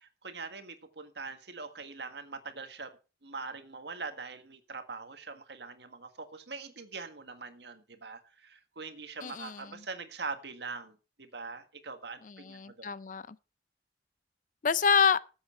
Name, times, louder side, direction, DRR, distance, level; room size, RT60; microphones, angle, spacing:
voice 1, 0.0-2.9 3.2-12.9, right 4 dB, 70° right, 1.7 m, -43 dB
voice 2, 9.2-9.6 12.2-13.4 14.6-15.2, left 6 dB, 45° left, 0.5 m, -27 dB
13.5 x 8.1 x 4.3 m
head